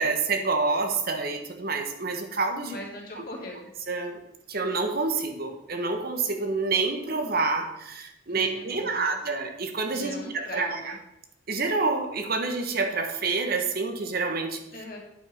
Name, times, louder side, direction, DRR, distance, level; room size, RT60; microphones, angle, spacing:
voice 1, 0.0-2.8 3.9-4.2 4.5-10.9 11.5-14.6, right 3 dB, 50° right, 5 dB, 1.2 m, -28 dB
voice 2, 2.6-3.7 8.3-9.2 9.9-11.0 14.7-15.0, left 1 dB, 50° left, -2 dB, 2.5 m, -40 dB
9.1 x 5.4 x 5.5 m, 0.81 s
head